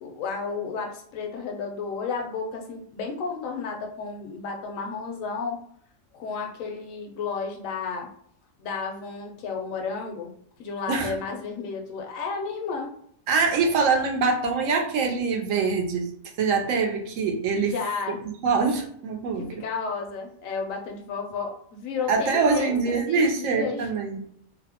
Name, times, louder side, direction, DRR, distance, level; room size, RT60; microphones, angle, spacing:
voice 1, 0.0-5.6 6.1-8.1 8.6-10.3 10.6-12.9 13.8-13.9 17.6-18.2 19.4-23.9, left 5 dB, 80° left, 2 dB, 1.0 m, -32 dB
voice 2, 13.3-16.1 16.4-17.8 18.4-19.5 22.1-24.2, right 4 dB, 75° right, 2 dB, 1.0 m, -24 dB
2.7 x 2.0 x 2.8 m, 0.64 s
omnidirectional pair, 1.4 m